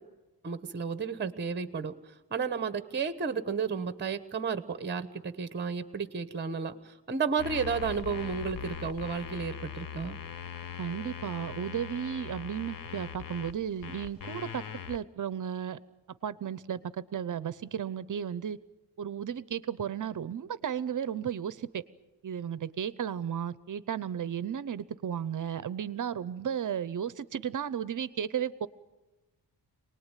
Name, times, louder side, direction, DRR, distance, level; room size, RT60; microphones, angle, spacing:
voice 1, 0.4-1.9 2.3-10.2, right 5 dB, 25° right, 12 dB, 1.1 m, -32 dB
sound 1, 7.4-15.0, left 8 dB, 55° left, 0.9 m, -41 dB
voice 2, 10.8-15.8 16.2-16.8 17.1-18.6 19.0-21.8 22.2-28.7, right 8 dB, 50° right, 17 dB, 0.8 m, -34 dB
27.0 x 19.5 x 9.1 m, 1.1 s
wide cardioid pair, 140°, 41 cm